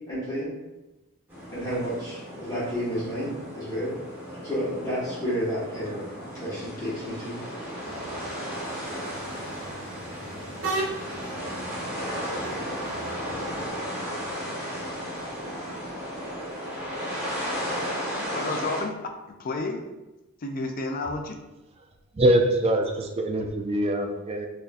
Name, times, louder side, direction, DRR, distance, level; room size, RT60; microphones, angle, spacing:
voice 1, 0.1-0.5 1.5-4.0 4.4-6.0 6.3-7.4, equal, 15° left, -10 dB, 1.3 m, -31 dB
sound 1, 1.3-18.8, equal, 10° right, 1.0 m, -34 dB
sound 2, 7.8-13.7, right 2 dB, 60° right, 0.7 m, -37 dB
voice 2, 18.1-18.9 19.4-19.8 20.4-21.4, left 2 dB, 40° left, 3 dB, 0.4 m, -30 dB
voice 3, 22.1-24.5, right 1 dB, 25° right, 2 dB, 0.4 m, -23 dB
4.0 x 2.7 x 2.5 m, 1.0 s
head